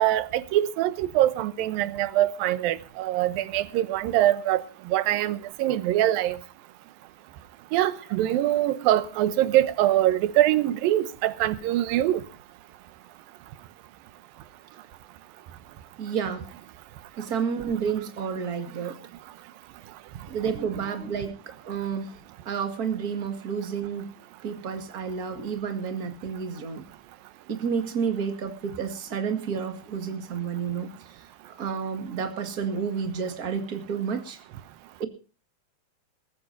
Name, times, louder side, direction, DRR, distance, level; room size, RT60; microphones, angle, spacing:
voice 1, 0.0-6.4 7.7-12.2, right 13 dB, 90° right, 2.7 m, -23 dB
voice 2, 16.0-16.5 17.2-19.0 20.3-22.1 22.4-24.1 24.4-26.8 27.5-31.3 31.6-34.4 35.0-35.1, right 6 dB, 30° right, 1.9 m, -30 dB
22.0 x 15.0 x 2.7 m
omnidirectional pair, 4.0 m